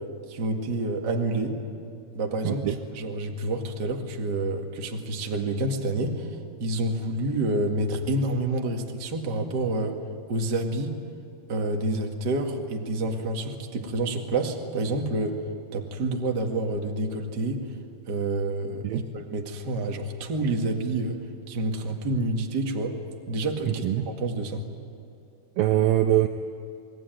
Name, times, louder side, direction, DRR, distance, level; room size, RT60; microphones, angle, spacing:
voice 1, 0.3-1.6 2.1-2.6 2.9-10.0 10.3-11.0 11.5-15.4 15.7-17.6 18.1-21.2 21.5-23.0 23.3-24.6, right 2 dB, 40° right, 2 dB, 1.6 m, -28 dB
voice 2, 2.4-2.8 18.8-19.1 23.7-24.1 25.6-26.3, right 13 dB, 75° right, 7 dB, 2.2 m, -23 dB
28.0 x 20.5 x 9.3 m, 2.6 s
omnidirectional pair, 5.0 m